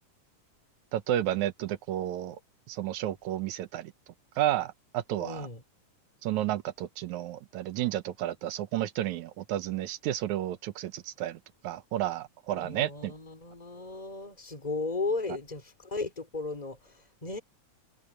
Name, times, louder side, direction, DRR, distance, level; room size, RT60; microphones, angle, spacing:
voice 1, 0.9-2.4 2.7-3.9 4.4-5.5 6.2-13.1, right 13 dB, 70° right, 2.1 m, -32 dB
voice 2, 5.2-5.6 12.5-17.4, left 3 dB, 10° left, 3.9 m, -35 dB
omnidirectional pair, 3.8 m